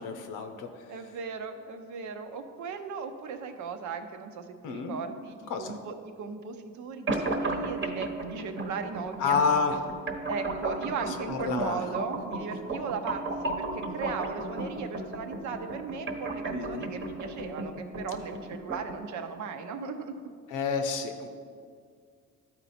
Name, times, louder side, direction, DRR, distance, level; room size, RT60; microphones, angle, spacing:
voice 1, 0.0-0.7 4.6-5.0 5.5-5.8 9.2-9.8 11.1-11.8 16.5-16.9 20.5-21.3, left 5 dB, 90° left, 6 dB, 0.8 m, -29 dB
voice 2, 0.9-9.4 10.3-20.2, right 5 dB, 70° right, 7 dB, 0.8 m, -37 dB
sound 1, 7.1-19.1, right 2 dB, 40° right, 1.0 m, -35 dB
12.0 x 4.4 x 4.2 m, 2.1 s
cardioid pair, 90°, 30 cm